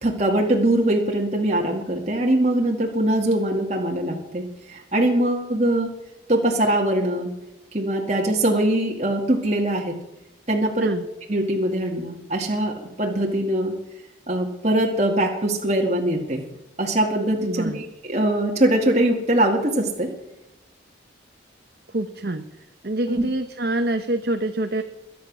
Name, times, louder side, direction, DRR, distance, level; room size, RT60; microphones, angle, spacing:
voice 1, 0.0-5.9 6.3-7.3 7.7-10.0 10.5-10.9 11.3-13.7 14.3-16.4 16.8-20.1 23.1-23.2, right 1 dB, 35° right, 0 dB, 2.0 m, -22 dB
voice 2, 17.4-17.8 21.9-22.5 22.8-24.8, right 1 dB, 55° right, 6 dB, 1.0 m, -25 dB
22.0 x 9.4 x 6.3 m, 0.95 s
head